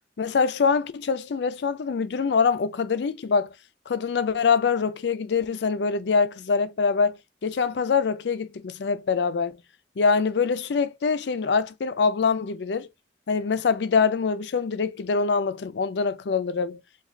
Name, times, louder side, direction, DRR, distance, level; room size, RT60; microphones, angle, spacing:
voice 1, 0.2-3.5 3.9-9.6 10.0-12.9 13.3-16.8, left 5 dB, 65° left, 0.4 m, -24 dB
3.1 x 2.3 x 3.7 m
head